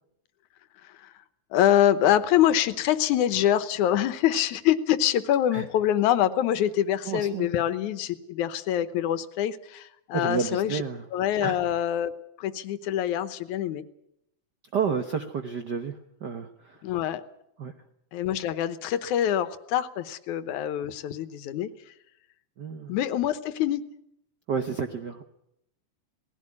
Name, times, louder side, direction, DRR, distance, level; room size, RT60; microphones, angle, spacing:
voice 1, 1.5-10.8 11.1-12.1 12.4-13.9 16.8-17.2 18.1-21.7 22.9-23.8, left 11 dB, 90° left, 13 dB, 2.4 m, -25 dB
voice 2, 7.0-7.5 10.1-11.1 11.4-11.6 14.7-16.8 17.6-17.7 22.6-23.0 24.5-25.2, right 6 dB, 70° right, 7 dB, 1.0 m, -30 dB
19.0 x 16.0 x 9.7 m, 0.80 s
omnidirectional pair, 3.4 m